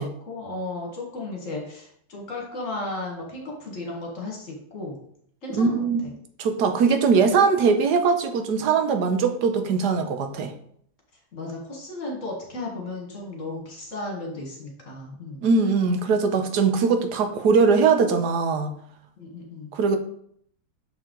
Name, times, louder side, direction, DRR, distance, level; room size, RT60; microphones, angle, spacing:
voice 1, 0.0-5.0 5.4-5.9 11.3-15.4 19.2-19.7, left 2 dB, 50° left, -1 dB, 1.9 m, -34 dB
voice 2, 5.6-6.0 6.4-10.5 15.4-18.7 19.7-20.0, right 5 dB, 80° right, 7 dB, 1.4 m, -21 dB
7.3 x 4.5 x 3.8 m, 0.66 s
omnidirectional pair, 1.7 m